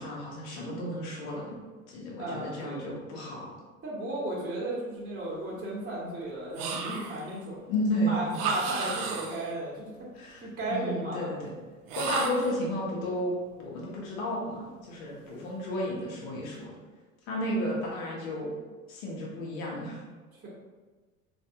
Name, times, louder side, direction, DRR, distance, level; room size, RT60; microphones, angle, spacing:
voice 1, 0.0-1.6 1.9-3.5 7.7-8.3 10.1-11.5 12.0-16.7 17.3-18.5 18.9-20.0, equal, 70° left, -3 dB, 1.0 m, -32 dB
voice 2, 2.2-2.9 3.8-7.6 8.1-9.9 10.4-11.3 20.3-20.5, right 1 dB, 20° right, -7 dB, 1.0 m, -34 dB
sound 1, 6.5-7.3 8.3-9.5 11.9-12.6, right 5 dB, 55° right, 0.6 m, -33 dB
3.2 x 2.6 x 2.7 m, 1.4 s
hypercardioid pair, 75°, 43 cm